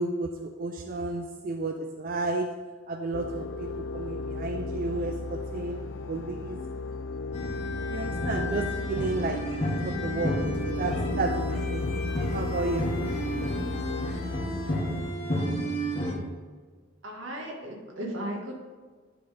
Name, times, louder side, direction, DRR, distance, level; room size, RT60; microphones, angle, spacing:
voice 1, 0.0-2.5 2.9-6.6 7.9-11.9 12.3-12.9, right 3 dB, 45° right, 5 dB, 0.4 m, -32 dB
sound 1, 3.1-15.1, left 3 dB, 70° left, 0.4 m, -34 dB
sound 2, 7.3-16.1, equal, 30° left, 1.2 m, -31 dB
voice 2, 17.0-18.5, right 1 dB, 85° right, 0 dB, 1.7 m, -35 dB
9.6 x 3.9 x 5.0 m, 1.5 s
head